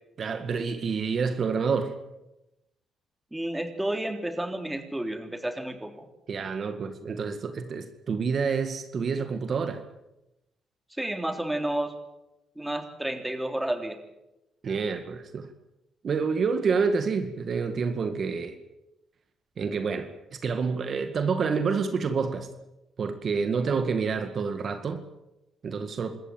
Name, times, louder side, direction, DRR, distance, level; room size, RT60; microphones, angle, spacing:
voice 1, 0.2-1.9 6.3-9.8 14.6-15.5 16.0-18.6 19.6-22.5 23.0-25.0 25.6-26.2, right 5 dB, 50° right, 8 dB, 2.0 m, -28 dB
voice 2, 3.3-6.1 10.9-11.9 12.5-14.0, right 1 dB, 10° right, 7 dB, 3.3 m, -31 dB
26.5 x 14.0 x 9.1 m, 0.94 s
cardioid pair, 90°, 0 cm